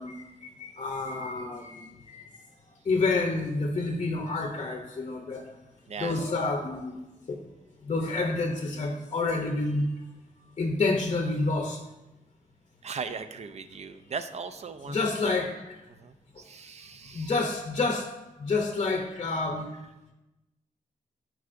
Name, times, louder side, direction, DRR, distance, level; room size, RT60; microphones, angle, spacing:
voice 1, 0.0-2.2 2.9-5.4 6.0-7.0 7.3-7.4 7.8-9.9 10.6-11.8 14.9-15.7 17.1-18.1 18.4-19.7, left 3 dB, 40° left, 2 dB, 0.6 m, -29 dB
voice 2, 12.8-15.4 16.0-17.3, right 5 dB, 50° right, 10 dB, 0.4 m, -38 dB
12.5 x 4.7 x 2.6 m, 0.98 s
wide cardioid pair, 175°, 15 cm